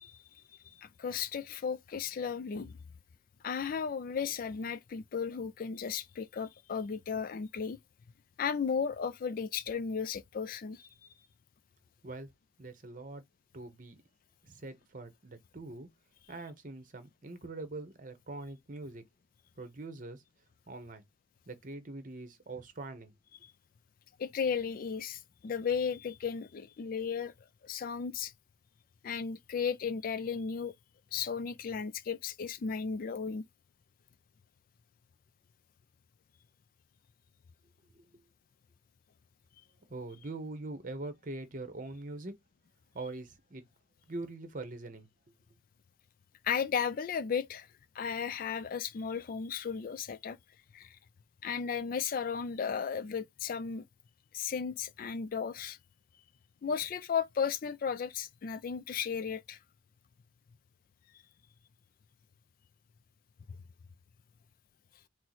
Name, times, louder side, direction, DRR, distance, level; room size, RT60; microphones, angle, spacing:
voice 1, 0.0-2.8 3.4-7.8 8.4-10.9 23.4-23.5 24.2-27.3 27.6-28.3 29.0-30.7 31.1-33.5 46.4-47.7 47.9-50.4 50.7-51.0 51.4-53.9 54.3-55.8 56.6-59.6, left 6 dB, 45° left, 0.3 m, -35 dB
voice 2, 12.6-13.2 13.5-14.0 14.4-15.9 16.3-19.0 19.6-20.2 20.7-21.0 21.5-23.1 37.9-38.2 39.9-42.3 42.9-43.6 44.1-45.1, right 2 dB, 45° right, 0.9 m, -43 dB
4.5 x 2.1 x 4.0 m
head